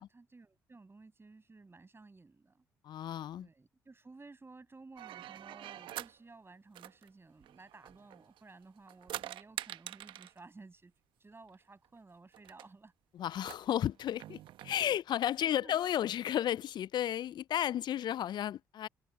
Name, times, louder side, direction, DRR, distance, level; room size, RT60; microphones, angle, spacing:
voice 1, 0.0-2.6 3.4-10.9 11.2-12.9 15.4-15.8, right 3 dB, 25° right, 7.5 m, -55 dB
voice 2, 2.8-3.5 13.1-18.9, left 11 dB, 55° left, 0.4 m, -33 dB
sound 1, 5.0-6.2 6.7-8.4 8.8-10.4 11.5-11.6 11.8-11.9 12.3-12.7 13.4-14.7, right 13 dB, 65° right, 1.1 m, -45 dB
hypercardioid pair, 50°, 9 cm